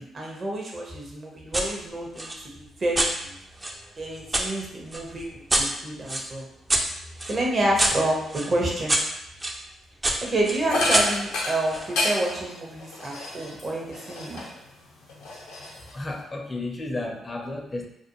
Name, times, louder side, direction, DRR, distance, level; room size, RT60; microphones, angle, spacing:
voice 1, 0.0-3.3 4.0-6.4 7.2-9.0 10.2-14.5, right 1 dB, 45° right, -2 dB, 0.8 m, -29 dB
Shovel in dirt, 1.5-1.7 2.2-4.5 4.9-9.6 10.0-11.9, right 1 dB, 25° right, 0.4 m, -27 dB
sound 1, 10.7-14.7 15.1-16.2, left 2 dB, 80° left, 0.6 m, -30 dB
voice 2, 15.9-17.9, left 2 dB, 30° left, 2 dB, 0.5 m, -32 dB
2.4 x 2.1 x 2.9 m, 0.79 s
hypercardioid pair, 45°, 0 cm